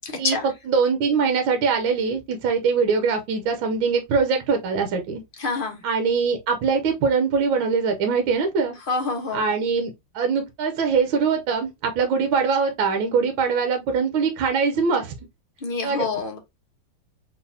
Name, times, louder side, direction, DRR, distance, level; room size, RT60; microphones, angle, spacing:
voice 1, 0.0-0.5 5.4-5.8 8.9-9.4 15.6-16.4, left 4 dB, 40° left, 0.7 m, -27 dB
voice 2, 0.7-5.2 5.8-8.8 9.3-15.1 15.8-16.1, right 5 dB, 75° right, 1.5 m, -22 dB
4.3 x 3.5 x 2.6 m
omnidirectional pair, 2.3 m